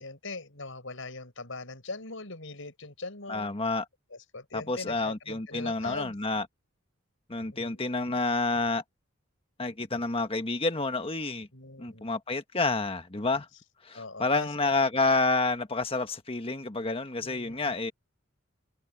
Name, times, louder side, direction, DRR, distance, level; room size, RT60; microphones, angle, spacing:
voice 1, 0.0-3.5 4.1-6.1 7.5-7.8 11.5-12.1 13.9-14.7 17.2-17.7, left 3 dB, 70° left, 6.7 m, -41 dB
voice 2, 3.3-3.8 4.5-6.4 7.3-8.8 9.6-11.5 11.8-13.5 13.8-17.9, left 3 dB, 30° left, 1.4 m, -29 dB
open air
head